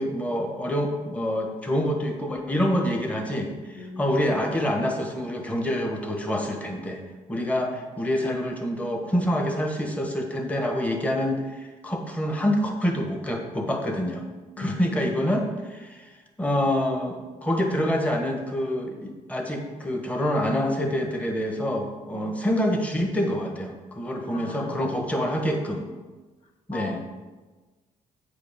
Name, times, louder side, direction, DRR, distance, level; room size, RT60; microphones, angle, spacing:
voice 1, 0.0-7.0 7.3-14.2 14.6-16.1 16.4-25.9 26.7-27.0, equal, 10° left, 2 dB, 1.3 m, -26 dB
voice 2, 3.7-4.1 14.6-15.0 22.1-22.3 24.3-24.8 26.7-27.0, left 4 dB, 55° left, 3 dB, 0.8 m, -38 dB
8.9 x 5.1 x 5.1 m, 1.3 s
cardioid pair, 115°, 13 cm